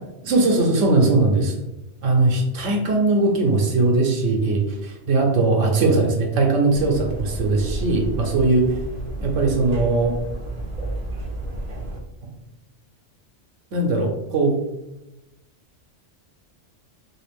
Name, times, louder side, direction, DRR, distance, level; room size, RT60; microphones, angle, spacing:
voice 1, 0.2-1.5 2.0-8.6 9.2-10.1 13.7-14.6, right 2 dB, 85° right, 0 dB, 1.1 m, -20 dB
sound 1, 6.7-12.0, right 2 dB, 50° right, 0.5 m, -31 dB
3.2 x 2.9 x 3.3 m, 0.93 s
omnidirectional pair, 1.3 m